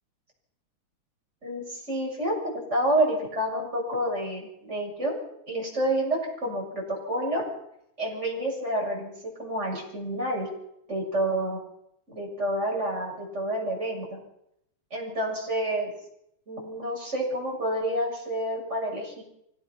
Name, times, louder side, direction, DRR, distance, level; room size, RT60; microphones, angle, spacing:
voice 1, 1.4-2.4 2.7-5.2 5.5-7.4 8.0-10.5 10.9-11.6 12.1-14.2 14.9-15.9 16.5-19.2, right 1 dB, 20° right, -2 dB, 7.4 m, -29 dB
24.5 x 18.0 x 5.9 m, 0.79 s
omnidirectional pair, 3.4 m